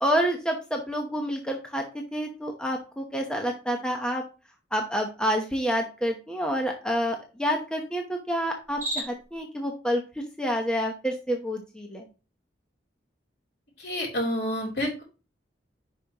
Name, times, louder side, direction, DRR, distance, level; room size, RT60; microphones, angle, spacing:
voice 1, 0.0-1.8 2.1-4.2 4.7-10.0 10.4-12.1, equal, 5° left, 1 dB, 0.9 m, -28 dB
Cricket, 8.6-9.4, right 1 dB, 15° right, 4.4 m, -34 dB
voice 2, 13.8-15.0, equal, 60° left, -2 dB, 3.3 m, -29 dB
10.0 x 5.3 x 3.0 m, 0.32 s
head